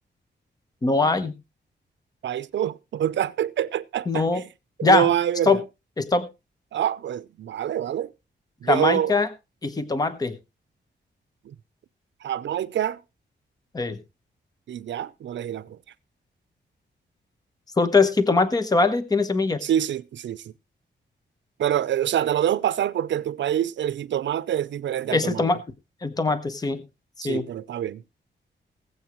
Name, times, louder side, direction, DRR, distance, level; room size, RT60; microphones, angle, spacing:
voice 1, 0.8-1.3 4.1-4.4 4.8-5.1 5.5-5.6 6.0-6.3 8.6-9.3 9.6-10.4 13.7-14.0 17.8-19.6 25.1-25.6 26.0-26.8 27.2-27.4, left 3 dB, 20° left, 0.9 m, -21 dB
voice 2, 2.2-4.4 4.8-5.6 6.7-8.1 8.6-9.1 11.5-11.6 12.2-13.0 14.7-15.8 19.6-20.4 21.6-25.5 27.2-28.0, right 10 dB, 80° right, 0.6 m, -26 dB
20.5 x 7.9 x 3.1 m
wide cardioid pair, 160°, 19 cm